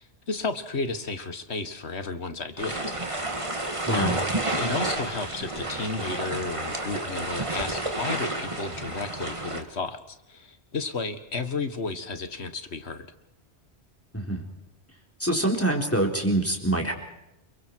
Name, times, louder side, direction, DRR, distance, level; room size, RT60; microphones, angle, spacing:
voice 1, 0.0-3.0 3.9-13.1, left 3 dB, 70° left, 10 dB, 1.9 m, -33 dB
sound 1, 2.6-9.6, right 2 dB, 30° right, 2.1 m, -30 dB
voice 2, 3.9-4.2 14.1-14.4 15.2-16.9, right 1 dB, 10° left, 2 dB, 3.9 m, -25 dB
29.5 x 22.5 x 4.7 m, 0.88 s
omnidirectional pair, 1.1 m